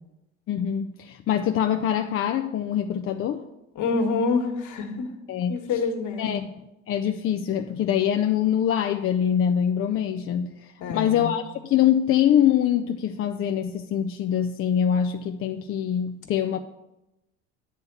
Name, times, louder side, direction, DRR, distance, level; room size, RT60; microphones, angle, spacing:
voice 1, 0.5-3.4 5.3-5.5 6.2-6.5 6.9-16.6, left 9 dB, 40° left, 6 dB, 0.5 m, -24 dB
voice 2, 3.7-5.1 5.5-6.3 10.8-11.3, left 4 dB, 60° left, 3 dB, 1.6 m, -26 dB
9.7 x 3.4 x 6.9 m, 0.94 s
hypercardioid pair, 70°, 34 cm